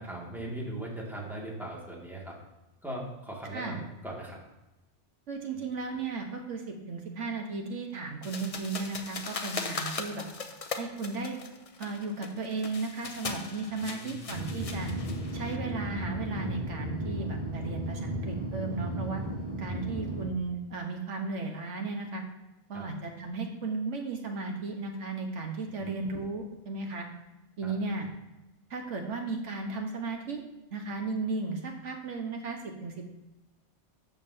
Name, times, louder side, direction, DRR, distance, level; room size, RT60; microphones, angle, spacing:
voice 1, 0.0-2.3 2.8-4.4 13.8-14.4 22.7-22.8 25.8-25.9 27.6-27.7, right 1 dB, ahead, -3 dB, 2.1 m, -39 dB
voice 2, 5.3-10.2 10.8-11.4 11.8-14.9 15.3-19.2 19.6-22.2 22.7-27.1 27.6-28.1 28.7-30.4 30.7-33.1, right 3 dB, 85° right, 3 dB, 1.5 m, -35 dB
sound 1, 8.2-15.6, left 4 dB, 35° left, 0.7 m, -39 dB
sound 2, 14.3-20.2, right 1 dB, 40° right, 2.2 m, -34 dB
12.5 x 7.2 x 2.8 m, 1.0 s
omnidirectional pair, 1.2 m